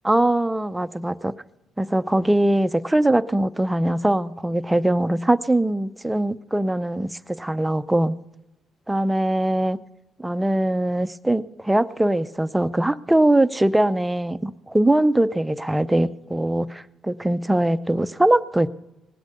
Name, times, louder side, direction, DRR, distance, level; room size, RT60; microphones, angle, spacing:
voice 1, 0.0-1.3 1.8-8.2 8.9-9.8 10.2-18.7, right 1 dB, 10° right, 12 dB, 0.6 m, -21 dB
19.5 x 8.1 x 6.6 m, 0.94 s
cardioid pair, 100°, 0 cm